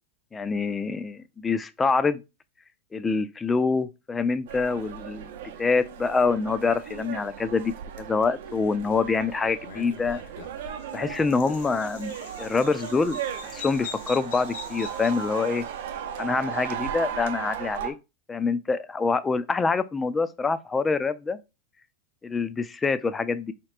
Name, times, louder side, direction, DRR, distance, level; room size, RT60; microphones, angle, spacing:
voice 1, 0.3-2.2 2.9-5.3 5.6-10.2 10.9-15.6 16.2-18.0 18.3-21.4 22.2-23.5, left 4 dB, 15° left, 0.4 m, -26 dB
sound 1, 4.5-17.9, right 9 dB, 70° right, 0.6 m, -36 dB
Bird vocalization bird call bird song, 9.6-15.9, left 5 dB, 65° left, 0.9 m, -43 dB
4.3 x 2.9 x 2.4 m
hypercardioid pair, 110°, 0 cm